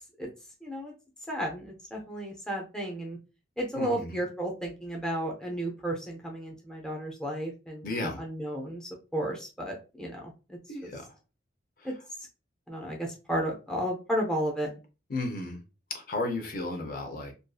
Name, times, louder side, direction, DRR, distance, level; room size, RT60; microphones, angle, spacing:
voice 1, 0.6-0.9 1.3-3.2 3.6-7.9 8.2-10.9 12.7-14.7, right 1 dB, 5° left, -1 dB, 0.5 m, -33 dB
voice 2, 3.7-4.2 7.8-8.2 10.7-11.1 11.8-11.9 15.1-15.6 15.9-17.3, left 2 dB, 50° left, 4 dB, 0.5 m, -34 dB
2.5 x 2.4 x 2.3 m, 0.30 s
head